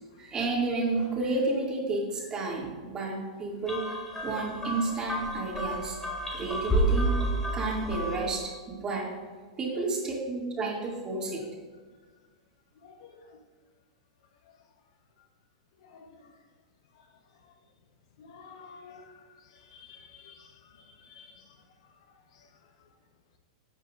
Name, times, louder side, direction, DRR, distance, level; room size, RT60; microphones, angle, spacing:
voice 1, 0.2-3.8 4.2-6.0 6.3-7.2 7.5-9.1 9.6-11.4, right 3 dB, 25° right, -2 dB, 2.4 m, -31 dB
sound 1, 3.7-8.4, right 1 dB, 10° left, 1.7 m, -30 dB
voice 2, 12.8-13.2 15.8-16.2 18.2-19.2 19.7-20.5 21.0-21.5, left 5 dB, 65° left, 5 dB, 1.0 m, -50 dB
12.0 x 8.1 x 2.5 m, 1.4 s
hypercardioid pair, 115°, 3 cm